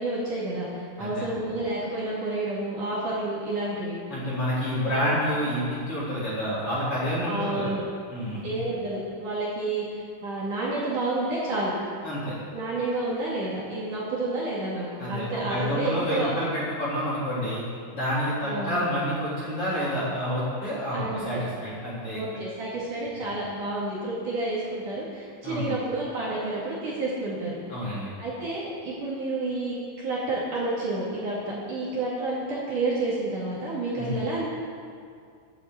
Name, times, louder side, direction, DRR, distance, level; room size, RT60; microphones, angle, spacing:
voice 1, 0.0-4.0 4.8-5.2 7.3-7.8 8.4-11.7 12.5-16.3 18.4-18.7 20.9-21.4 22.1-27.6 27.9-34.5, right 2 dB, 50° right, -7 dB, 3.4 m, -30 dB
voice 2, 4.1-7.7 8.1-8.6 12.0-12.4 15.0-17.6 17.9-22.2 25.4-25.7 27.7-28.1 34.0-34.2, equal, 30° left, -9 dB, 4.2 m, -28 dB
12.0 x 10.0 x 8.2 m, 2.3 s
omnidirectional pair, 5.3 m